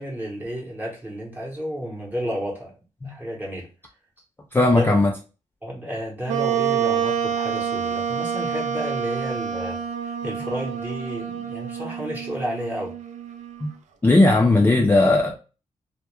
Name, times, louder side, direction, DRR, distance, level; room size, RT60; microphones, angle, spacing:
voice 1, 0.0-2.7 3.0-3.7 4.7-4.9 5.6-12.9, equal, 15° right, 0.8 m, -31 dB
voice 2, 4.5-5.1 13.6-13.7 14.0-15.3, left 2 dB, 15° left, 0.4 m, -17 dB
Wind instrument woodwind instrument, 6.3-13.7, right 8 dB, 75° right, 0.4 m, -27 dB
2.3 x 2.1 x 2.9 m
cardioid pair, 95°, 13 cm